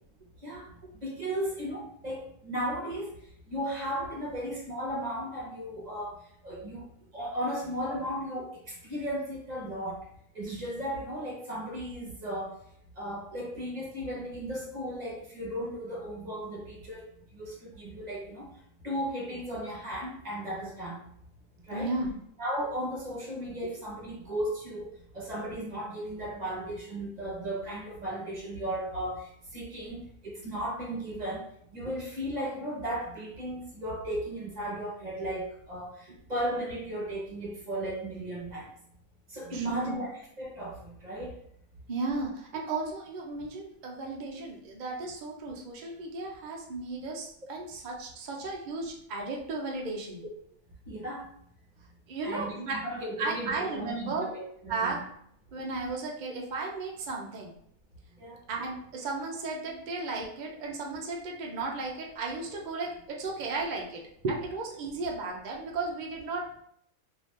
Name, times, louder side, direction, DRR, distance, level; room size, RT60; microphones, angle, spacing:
voice 1, 1.0-3.1 3.5-6.1 6.4-6.9 7.1-10.0 10.3-12.5 13.0-18.5 18.8-21.0 21.7-21.9 22.4-24.9 25.1-38.7 39.3-41.4 50.9-51.3 52.2-55.0 58.2-58.4, right 1 dB, 35° right, -4 dB, 1.0 m, -35 dB
voice 2, 21.7-22.2 39.5-40.0 41.9-50.2 52.1-52.8 53.2-54.3 54.7-55.0 55.5-57.5 58.5-66.6, right 3 dB, 50° right, -1 dB, 0.5 m, -34 dB
2.7 x 2.7 x 3.5 m, 0.69 s
omnidirectional pair, 1.4 m